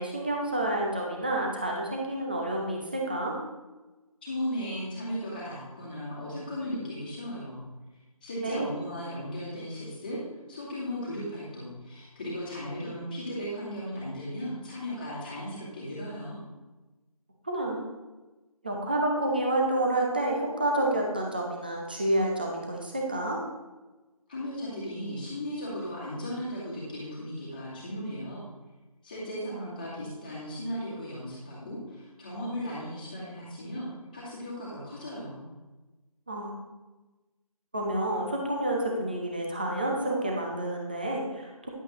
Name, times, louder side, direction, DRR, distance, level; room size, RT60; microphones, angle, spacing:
voice 1, 0.0-3.4 8.4-8.7 17.4-17.9 18.6-23.4 36.3-36.5 37.7-41.7, right 1 dB, 15° right, -1 dB, 0.7 m, -29 dB
voice 2, 4.2-7.6 8.2-10.2 10.5-16.4 24.3-28.4 29.0-35.4, equal, 15° left, -7 dB, 1.9 m, -36 dB
10.5 x 8.2 x 3.1 m, 1.1 s
figure-of-eight pair, 170°, 19 cm